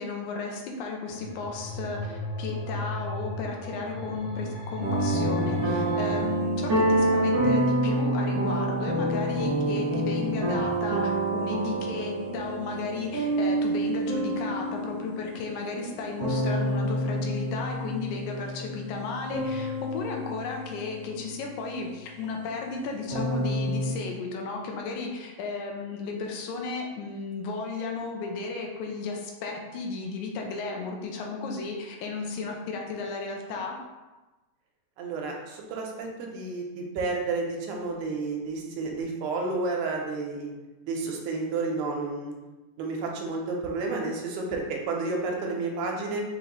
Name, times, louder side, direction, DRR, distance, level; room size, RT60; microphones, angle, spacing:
voice 1, 0.0-33.8, left 4 dB, 80° left, 1 dB, 2.0 m, -34 dB
sound 1, 1.1-6.2, left 1 dB, 60° left, 1.7 m, -36 dB
sound 2, 4.8-22.7 23.1-23.9, right 1 dB, 55° right, 1.1 m, -28 dB
voice 2, 35.0-40.6 40.8-42.3 42.8-46.2, right 3 dB, 85° right, 0 dB, 2.0 m, -31 dB
5.5 x 2.6 x 3.0 m, 1.1 s
omnidirectional pair, 3.5 m